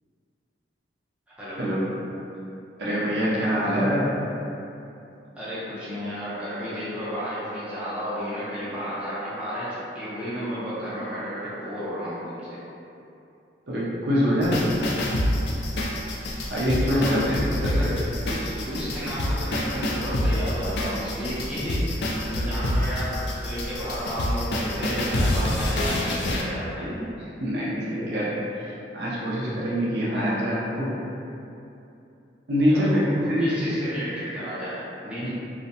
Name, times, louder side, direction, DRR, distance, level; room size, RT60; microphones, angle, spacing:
voice 1, 1.3-1.6 5.4-12.6 16.8-21.9 22.2-27.0 32.7-33.0 33.4-35.3, equal, 5° right, -12 dB, 0.6 m, -32 dB
voice 2, 2.8-4.1 13.7-14.7 16.5-17.7 27.4-30.9 32.5-33.6 35.2-35.3, equal, 65° right, -7 dB, 0.6 m, -24 dB
sound 1, 14.4-26.4, left 1 dB, 70° left, 0.3 m, -27 dB
2.5 x 2.1 x 2.6 m, 2.8 s
head